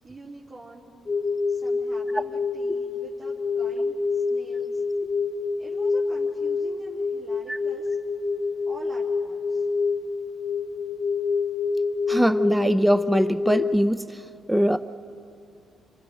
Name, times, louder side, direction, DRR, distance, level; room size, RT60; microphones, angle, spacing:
voice 1, 0.0-0.9 1.5-4.8 5.6-8.0 8.7-9.7, right 2 dB, 45° right, -8 dB, 3.5 m, -45 dB
sound 1, 1.1-13.8, left 4 dB, 30° left, 0.8 m, -27 dB
voice 2, 12.1-14.2 14.5-14.8, equal, 5° right, 11 dB, 0.7 m, -21 dB
28.0 x 26.5 x 5.3 m, 2.5 s
cardioid pair, 90°, 0 cm